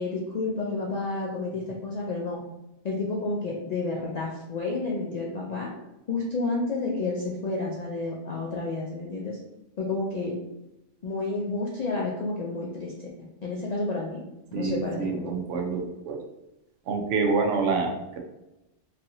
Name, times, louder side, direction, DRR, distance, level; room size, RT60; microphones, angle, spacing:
voice 1, 0.0-2.4 2.8-5.7 6.1-9.3 9.8-10.3 11.0-12.9 13.4-14.2 14.5-15.3, left 3 dB, 65° left, -3 dB, 0.4 m, -30 dB
voice 2, 14.5-16.2 16.9-18.2, right 4 dB, 80° right, 2 dB, 0.9 m, -27 dB
3.1 x 2.7 x 2.6 m, 0.93 s
omnidirectional pair, 1.2 m